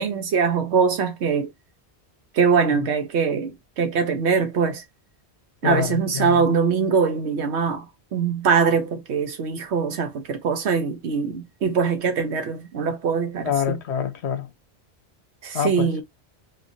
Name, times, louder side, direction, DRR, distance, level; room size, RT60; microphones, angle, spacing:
voice 1, 0.0-1.5 2.3-4.8 5.6-7.9 8.1-13.8 15.4-16.0, right 5 dB, 85° right, 1.1 m, -22 dB
voice 2, 5.6-6.4 13.4-14.5 15.5-16.0, left 8 dB, 85° left, 1.0 m, -26 dB
3.0 x 2.5 x 2.5 m
omnidirectional pair, 1.1 m